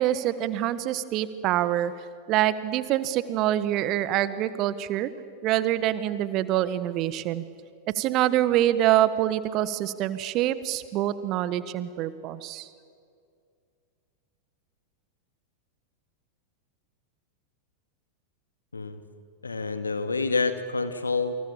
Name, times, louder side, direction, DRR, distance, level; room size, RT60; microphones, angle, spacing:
voice 1, 0.0-1.9 2.3-5.1 5.4-7.4 7.9-12.7, right 13 dB, 40° right, 15 dB, 1.4 m, -25 dB
voice 2, 19.4-21.4, left 4 dB, 75° left, 9 dB, 2.1 m, -28 dB
29.0 x 26.5 x 7.4 m, 2.3 s
figure-of-eight pair, 90°, 0 cm